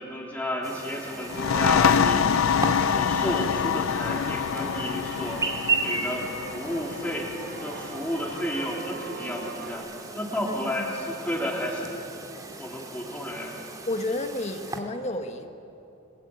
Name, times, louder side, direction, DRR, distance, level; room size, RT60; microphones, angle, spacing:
voice 1, 0.0-7.3 7.6-9.8 10.1-11.9 12.6-13.5, equal, 10° left, -3 dB, 3.6 m, -32 dB
Chirp tweet, 0.6-14.8, right 3 dB, 20° right, 2.4 m, -36 dB
sound 1, 0.9-9.7, right 3 dB, 55° right, 4.7 m, -43 dB
sound 2, 1.3-8.7, left 7 dB, 75° left, 0.5 m, -26 dB
voice 2, 13.9-15.5, left 2 dB, 35° left, 6 dB, 1.6 m, -31 dB
30.0 x 22.0 x 8.8 m, 2.8 s
head